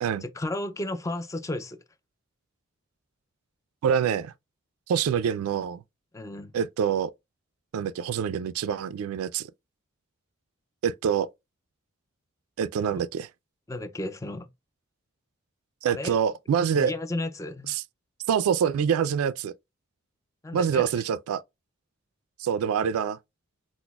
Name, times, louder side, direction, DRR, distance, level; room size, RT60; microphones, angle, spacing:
voice 1, 0.2-1.8 6.1-6.5 13.7-14.5 15.9-16.2 16.7-17.7 20.4-20.8, left 1 dB, 15° left, 0.3 m, -33 dB
voice 2, 3.8-4.3 4.9-5.8 6.5-7.1 7.7-9.5 10.8-11.3 12.6-13.3 15.8-16.9 17.7-17.8 18.3-19.5 20.5-21.4 22.4-23.2, right 7 dB, 90° right, 0.3 m, -25 dB
5.9 x 2.0 x 2.2 m
head